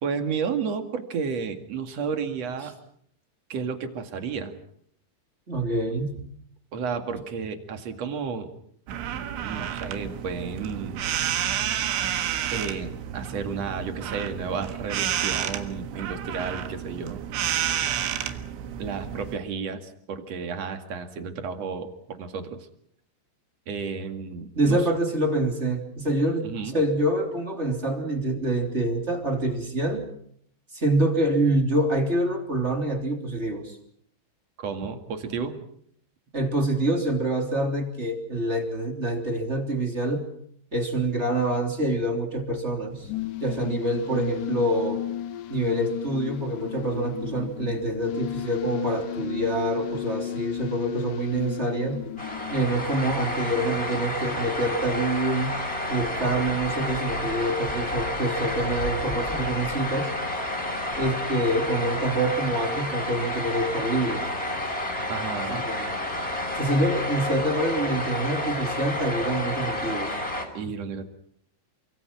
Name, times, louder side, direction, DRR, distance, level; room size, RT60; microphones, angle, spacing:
voice 1, 0.0-2.7 3.5-4.5 6.7-8.5 9.4-11.0 12.5-17.2 18.8-22.6 23.7-24.8 26.4-26.8 34.6-35.6 65.1-65.6 70.5-71.1, right 5 dB, 45° right, 7 dB, 2.4 m, -32 dB
voice 2, 5.5-6.3 24.5-30.1 30.7-33.8 36.3-40.3 40.7-43.1 43.4-45.0 45.5-52.1 52.5-55.6 55.9-60.2 61.0-64.3 65.5-65.9 66.5-70.2, right 1 dB, 15° right, 3 dB, 2.8 m, -26 dB
sound 1, 8.9-19.4, right 10 dB, 80° right, 4.0 m, -30 dB
sound 2, 42.9-53.3, left 11 dB, 65° left, 2.2 m, -34 dB
sound 3, 52.2-70.5, left 1 dB, 15° left, 4.6 m, -30 dB
28.5 x 25.0 x 6.1 m, 0.67 s
omnidirectional pair, 5.4 m